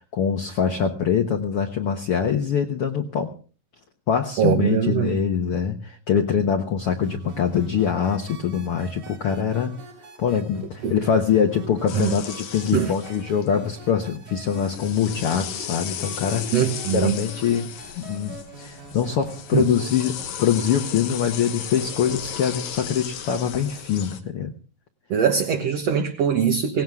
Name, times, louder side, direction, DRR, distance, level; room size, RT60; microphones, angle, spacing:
voice 1, 0.0-3.4 4.1-9.8 10.2-16.5 16.9-24.5, left 7 dB, 60° left, 3 dB, 1.6 m, -24 dB
voice 2, 4.4-5.1 10.8-10.9 11.9-12.1 12.7-12.9 16.5-17.2 19.5-19.7 25.1-26.8, right 8 dB, 60° right, 3 dB, 2.0 m, -22 dB
sound 1, 6.9-19.9, right 2 dB, 85° right, 5.7 m, -44 dB
sound 2, 11.9-13.6 14.4-24.2, left 9 dB, 85° left, 3.0 m, -35 dB
18.5 x 17.0 x 3.6 m, 0.38 s
omnidirectional pair, 3.8 m